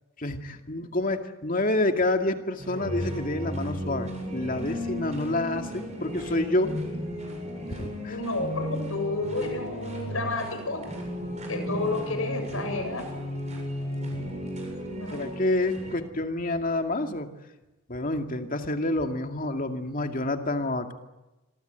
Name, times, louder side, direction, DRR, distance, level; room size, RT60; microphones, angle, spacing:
voice 1, 0.2-6.8 7.7-8.2 15.1-17.3 17.9-20.9, left 2 dB, 40° left, 5 dB, 2.3 m, -28 dB
sound 1, 2.6-16.0, equal, 30° right, 7.6 m, -34 dB
voice 2, 8.1-10.8 11.5-13.1 14.9-15.3, left 2 dB, 70° left, 6 dB, 7.5 m, -31 dB
27.0 x 22.5 x 9.2 m, 1.0 s
head